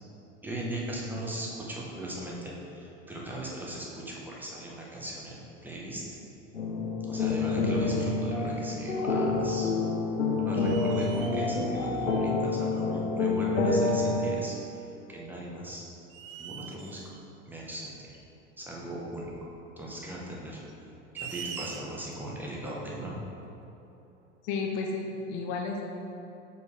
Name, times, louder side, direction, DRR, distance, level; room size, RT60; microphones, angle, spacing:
voice 1, 0.4-6.0 7.1-9.7 10.4-14.6 15.1-15.8 16.4-17.1 17.5-18.1 18.6-19.3 19.8-20.6 21.1-23.1, right 1 dB, 5° right, -4 dB, 1.0 m, -38 dB
sound 1, 6.5-14.2, left 3 dB, 80° left, 0.9 m, -28 dB
Squeaking Exterior Door Glass Metal Monster, 8.6-9.3 9.6-9.7 10.6-12.4 13.4-13.5 15.3-15.6 16.1-17.2 19.0-19.1 20.7-22.1, right 7 dB, 45° right, 0.4 m, -43 dB
voice 2, 24.4-25.8, left 4 dB, 35° left, 1 dB, 0.6 m, -32 dB
6.6 x 4.6 x 3.2 m, 2.9 s
figure-of-eight pair, 80°, 38 cm